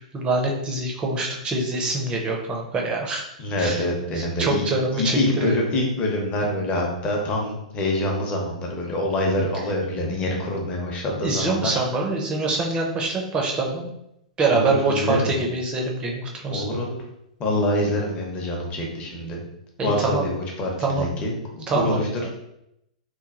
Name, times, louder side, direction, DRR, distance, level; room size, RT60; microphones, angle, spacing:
voice 1, 0.1-3.3 3.6-3.9 4.2-5.6 11.2-13.9 14.4-16.7 19.8-20.2 20.8-21.1 21.7-22.3, right 3 dB, 20° right, 0 dB, 0.6 m, -25 dB
voice 2, 3.4-4.6 4.9-11.8 14.5-15.4 16.5-17.0 17.4-19.4 19.8-22.1, left 1 dB, 30° left, 0 dB, 0.7 m, -25 dB
3.0 x 2.2 x 2.4 m, 0.82 s
hypercardioid pair, 120°, 4 cm